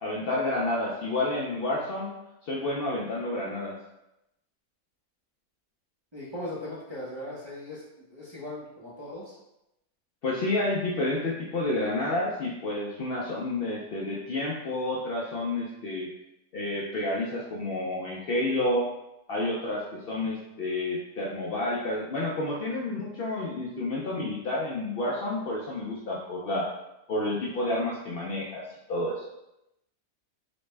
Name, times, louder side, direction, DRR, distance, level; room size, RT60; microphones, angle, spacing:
voice 1, 0.0-2.1 2.4-3.7 10.2-16.1 16.5-18.8 19.3-26.7 27.1-29.2, left 2 dB, 80° left, -4 dB, 0.5 m, -30 dB
voice 2, 6.1-7.8 8.1-9.4, left 1 dB, 40° right, -7 dB, 0.4 m, -38 dB
4.1 x 2.1 x 3.2 m, 0.88 s
omnidirectional pair, 1.6 m